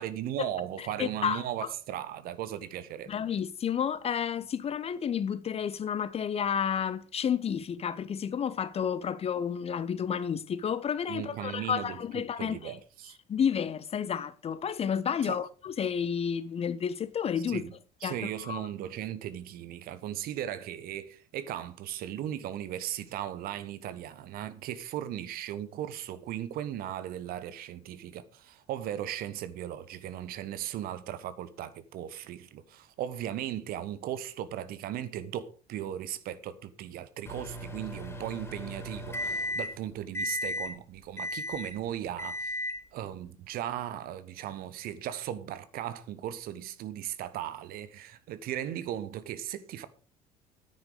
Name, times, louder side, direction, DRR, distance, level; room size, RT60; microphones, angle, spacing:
voice 1, 0.0-3.1 11.1-13.2 15.2-15.4 17.5-17.7 18.0-42.6 42.9-49.9, right 11 dB, 50° right, 1.2 m, -37 dB
voice 2, 0.8-1.4 3.1-12.8 13.3-17.6 18.0-18.2 18.4-18.6, left 7 dB, 30° left, 0.8 m, -31 dB
Microwave oven, 37.3-39.8 40.1-40.7 41.2-41.8 42.2-42.8, left 1 dB, 10° left, 3.8 m, -35 dB
10.0 x 9.9 x 5.1 m
figure-of-eight pair, 55°, 20 cm